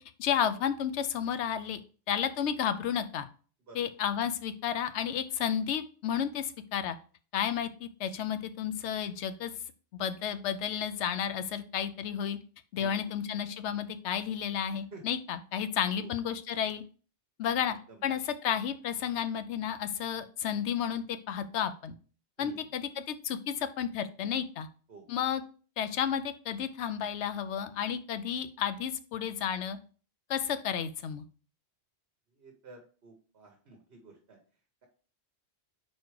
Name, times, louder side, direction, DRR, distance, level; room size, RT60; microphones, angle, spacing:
voice 1, 0.2-1.8 2.1-3.3 3.7-7.0 7.3-9.5 9.9-12.4 12.7-16.8 17.4-17.8 18.0-21.9 22.4-24.7 25.1-25.4 25.8-29.8 30.3-31.2, left 8 dB, 90° left, 11 dB, 0.9 m, -32 dB
voice 2, 32.4-34.4, right 3 dB, 60° right, 3 dB, 1.2 m, -51 dB
4.6 x 4.3 x 4.7 m, 0.39 s
omnidirectional pair, 1.1 m